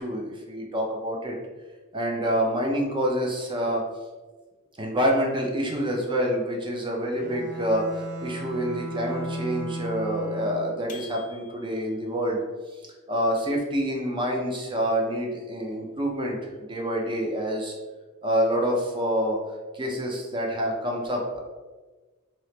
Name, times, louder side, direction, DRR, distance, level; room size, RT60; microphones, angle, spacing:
voice 1, 0.0-1.4 1.9-3.8 4.8-12.4 13.1-17.8 18.2-19.4 19.7-21.4, equal, 25° right, 0 dB, 0.6 m, -27 dB
Bowed string instrument, 7.1-10.9, right 1 dB, 45° right, 1.3 m, -35 dB
sound 1, 10.9-12.0, left 7 dB, 40° left, 0.5 m, -46 dB
3.0 x 2.9 x 3.1 m, 1.3 s
head